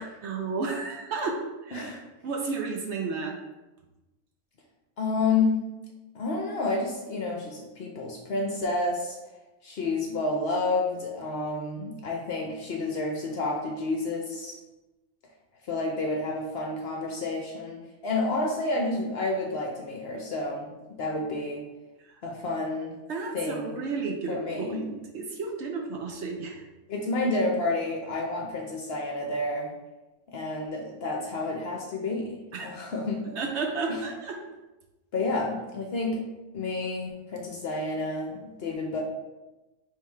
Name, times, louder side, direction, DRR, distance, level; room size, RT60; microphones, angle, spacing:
voice 1, 0.0-3.4 22.0-22.2 23.1-26.7 32.5-32.7 33.4-34.4, right 4 dB, 65° right, 1 dB, 0.8 m, -32 dB
voice 2, 5.0-5.7 6.1-9.2 9.6-14.6 15.7-20.7 21.0-21.6 22.2-23.0 23.3-23.8 24.3-24.9 26.9-29.7 30.3-33.4 33.9-34.0 35.1-36.2 36.5-39.0, left 2 dB, 60° left, 0 dB, 0.7 m, -30 dB
3.4 x 3.3 x 4.3 m, 1.1 s
omnidirectional pair, 1.4 m